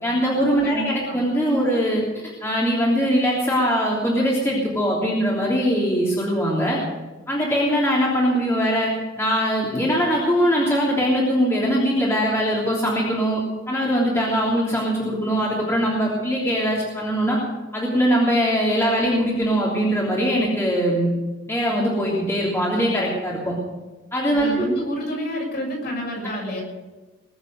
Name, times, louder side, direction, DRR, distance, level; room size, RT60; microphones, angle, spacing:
voice 1, 0.0-6.8 7.3-8.9 9.2-13.4 13.7-17.4 17.7-21.1 21.5-23.6 24.1-24.7, equal, 15° left, -5 dB, 3.1 m, -21 dB
voice 2, 0.6-1.2 24.3-26.6, equal, 50° left, -2 dB, 7.0 m, -29 dB
21.5 x 8.1 x 7.9 m, 1.2 s
head